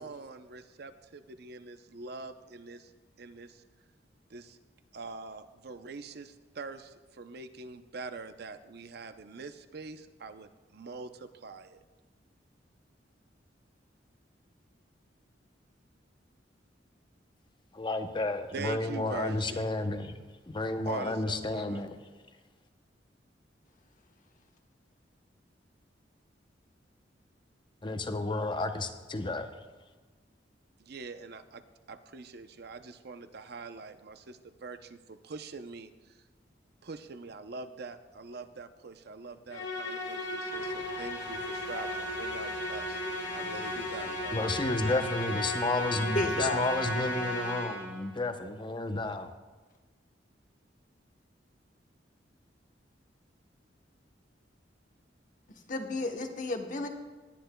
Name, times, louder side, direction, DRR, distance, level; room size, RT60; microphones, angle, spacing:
voice 1, 0.0-2.9 3.2-3.6 4.3-4.6 4.9-11.8 18.5-19.7 20.8-21.8 30.8-36.2 36.8-43.0 43.3-44.4, right 4 dB, 60° right, 10 dB, 0.6 m, -44 dB
voice 2, 17.7-20.2 20.5-22.0 27.8-29.5 44.3-49.3, left 2 dB, 25° left, 7 dB, 0.7 m, -31 dB
Musical instrument, 39.5-48.0, left 1 dB, 75° left, 2.1 m, -35 dB
sound 1, 40.5-46.9, right 1 dB, 20° right, 2.5 m, -51 dB
voice 3, 46.1-46.6 55.7-56.9, left 2 dB, 45° left, 4 dB, 1.1 m, -32 dB
20.0 x 10.0 x 2.2 m, 1.3 s
head